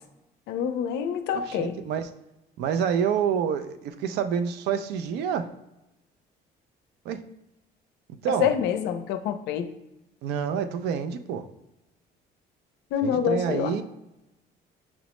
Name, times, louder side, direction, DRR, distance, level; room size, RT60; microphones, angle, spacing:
voice 1, 0.5-1.8 8.4-9.7 12.9-13.7, left 8 dB, 85° left, 9 dB, 0.4 m, -26 dB
voice 2, 1.5-2.1 2.6-5.5 7.0-7.2 8.2-8.5 10.2-11.5 13.0-13.8, right 7 dB, 85° right, 9 dB, 0.4 m, -27 dB
5.9 x 2.0 x 3.0 m, 0.93 s
cardioid pair, 110°, 17 cm